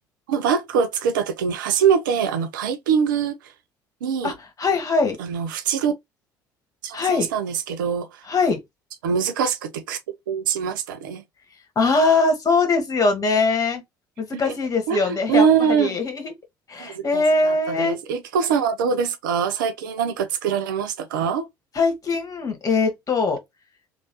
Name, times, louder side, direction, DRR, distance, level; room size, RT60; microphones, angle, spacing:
voice 1, 0.3-3.4 4.0-4.3 5.2-5.9 6.8-8.1 9.0-10.0 10.3-11.2 14.3-14.5 14.9-16.0 16.8-21.5, right 7 dB, 75° right, 0.5 m, -23 dB
voice 2, 4.2-5.2 6.9-7.3 8.2-8.6 11.7-13.8 14.2-15.5 15.8-16.3 16.7-18.0 21.7-23.4, left 3 dB, 30° left, 1.4 m, -21 dB
3.1 x 2.5 x 2.8 m
figure-of-eight pair, 60°, 11 cm